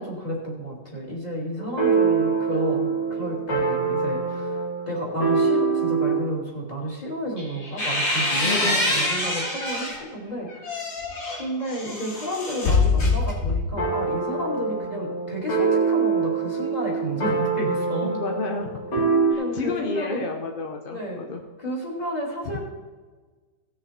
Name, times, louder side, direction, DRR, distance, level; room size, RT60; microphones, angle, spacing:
voice 1, 0.0-4.6 4.9-10.8 11.3-18.1 19.4-20.2 20.9-21.2 21.6-22.6, equal, 20° left, -4 dB, 3.0 m, -31 dB
sound 1, 1.6-6.3 13.8-19.3, right 5 dB, 70° left, 3.5 m, -24 dB
sound 2, 7.4-10.0 10.5-13.8, left 2 dB, 85° left, 3.7 m, -25 dB
voice 2, 8.4-8.9 18.0-19.0 19.3-21.4, left 3 dB, 40° left, 3 dB, 0.9 m, -31 dB
18.0 x 6.7 x 4.4 m, 1.3 s
omnidirectional pair, 2.0 m